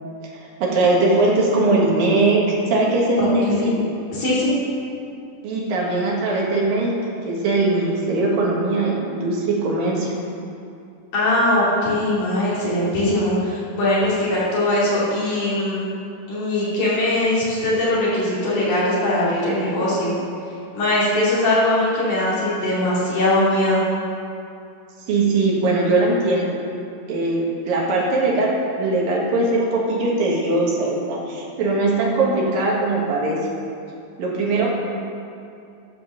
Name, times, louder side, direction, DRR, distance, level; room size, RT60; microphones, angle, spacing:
voice 1, 0.3-2.4 2.7-3.8 5.4-6.9 7.2-10.1 25.1-26.6 27.1-33.4 34.2-34.7, right 2 dB, 80° right, -3 dB, 3.4 m, -20 dB
voice 2, 3.2-3.7 4.1-4.5 11.1-15.9 16.3-20.1 20.7-23.8, left 1 dB, 60° left, -9 dB, 4.1 m, -21 dB
12.5 x 5.5 x 6.8 m, 2.5 s
omnidirectional pair, 4.1 m